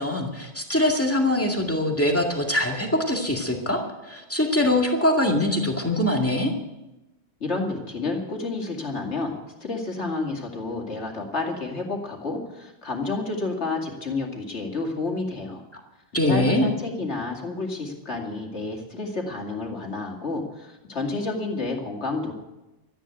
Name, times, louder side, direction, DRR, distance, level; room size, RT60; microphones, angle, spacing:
voice 1, 0.0-6.5 15.7-15.8 16.1-16.7, left 1 dB, 10° left, 1 dB, 2.1 m, -23 dB
voice 2, 7.4-9.3 9.6-15.6 16.3-22.3, left 3 dB, 70° left, 1 dB, 2.7 m, -30 dB
13.0 x 10.0 x 9.1 m, 1.0 s
omnidirectional pair, 1.2 m